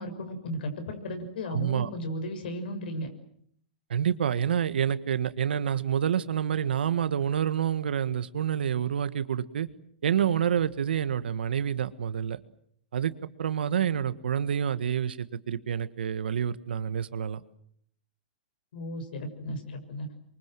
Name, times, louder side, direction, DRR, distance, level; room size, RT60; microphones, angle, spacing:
voice 1, 0.0-3.1 18.7-20.1, equal, 70° left, 7 dB, 6.3 m, -35 dB
voice 2, 1.5-1.9 3.9-9.7 10.0-12.4 12.9-13.1 13.4-17.4, right 8 dB, 90° right, 13 dB, 1.6 m, -28 dB
27.0 x 24.0 x 7.7 m, 0.66 s
hypercardioid pair, 155°, 5 cm